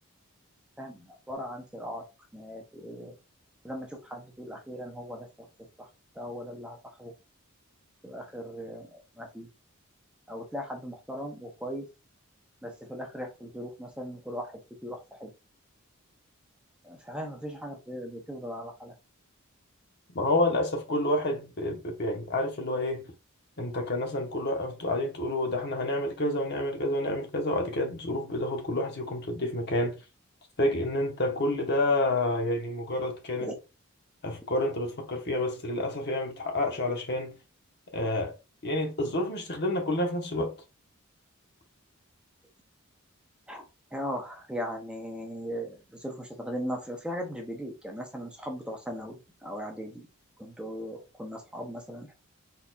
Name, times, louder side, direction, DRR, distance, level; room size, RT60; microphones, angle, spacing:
voice 1, 0.8-2.1 2.3-3.1 3.6-5.9 6.1-7.1 8.0-9.5 10.3-11.9 12.6-15.3 16.8-19.0 33.4-33.5 43.5-43.6 43.9-50.1 50.4-52.1, equal, 5° right, 0.7 m, -38 dB
voice 2, 20.1-23.1 23.6-30.0 30.6-33.5 34.2-37.4 37.9-38.3 38.6-40.5, left 1 dB, 50° left, 1.1 m, -29 dB
4.2 x 4.1 x 2.4 m
head